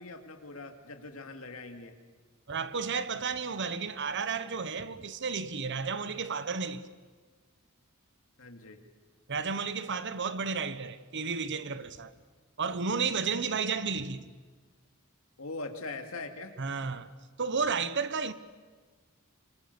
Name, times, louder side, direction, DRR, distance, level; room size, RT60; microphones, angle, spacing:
voice 1, 0.0-1.9 8.4-8.8 15.4-16.5, left 3 dB, 70° left, 2.4 m, -41 dB
voice 2, 2.5-6.8 9.3-12.1 12.6-14.4 16.6-17.1 17.4-18.3, right 5 dB, 55° right, 1.1 m, -32 dB
26.0 x 25.5 x 6.8 m
head